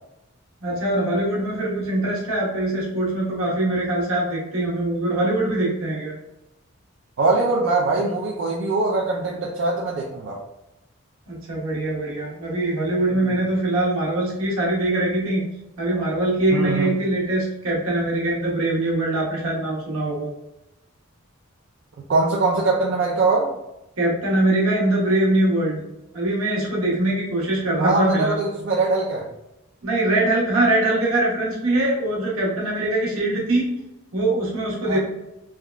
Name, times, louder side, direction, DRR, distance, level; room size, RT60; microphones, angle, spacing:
voice 1, 0.6-6.1 11.3-15.4 15.8-20.3 24.0-25.8 26.1-28.4 29.8-33.7 34.1-35.0, right 1 dB, 80° right, -4 dB, 1.1 m, -22 dB
voice 2, 7.2-10.4 13.1-13.3 16.5-16.9 22.1-23.5 27.8-29.3 34.8-35.0, right 3 dB, 60° right, -3 dB, 0.4 m, -22 dB
3.4 x 2.2 x 2.3 m, 0.92 s
head